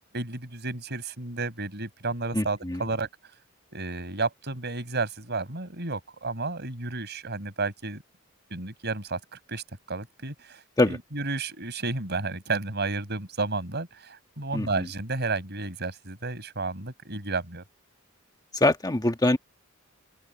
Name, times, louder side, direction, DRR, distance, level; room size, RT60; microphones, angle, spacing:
voice 1, 0.1-3.1 3.7-8.0 8.5-9.2 9.5-10.6 10.9-17.6, right 3 dB, 55° right, 5.4 m, -32 dB
voice 2, 2.3-2.8 10.8-11.0 14.5-14.9 18.5-19.4, left 2 dB, 20° left, 1.4 m, -24 dB
open air
head